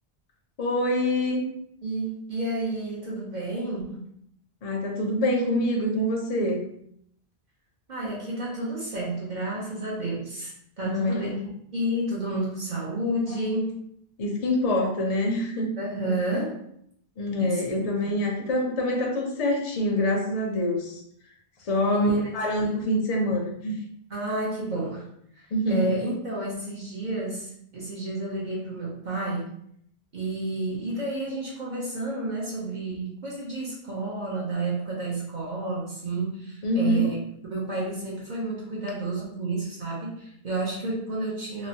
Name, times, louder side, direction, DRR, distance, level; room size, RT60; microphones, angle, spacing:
voice 1, 0.6-1.4 4.6-6.7 10.8-11.3 14.2-15.7 17.2-21.0 21.6-23.8 25.5-25.9 36.6-37.1, left 1 dB, 45° left, 0 dB, 0.5 m, -25 dB
voice 2, 1.8-4.1 7.9-11.4 11.7-13.8 15.8-16.6 17.4-18.2 21.9-22.3 22.6-22.9 24.1-25.1 25.4-29.5 30.1-37.2 37.5-41.7, right 2 dB, 50° right, -5 dB, 0.7 m, -30 dB
2.9 x 2.0 x 2.7 m, 0.71 s
omnidirectional pair, 1.0 m